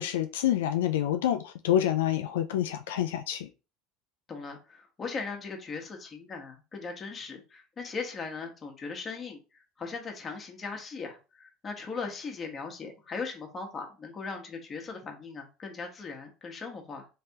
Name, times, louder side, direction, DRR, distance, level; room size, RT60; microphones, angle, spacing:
voice 1, 0.0-3.5, left 11 dB, 85° left, 0.3 m, -27 dB
voice 2, 4.3-17.1, left 4 dB, 30° left, 1.2 m, -39 dB
3.3 x 3.2 x 2.8 m
hypercardioid pair, 90°, 0 cm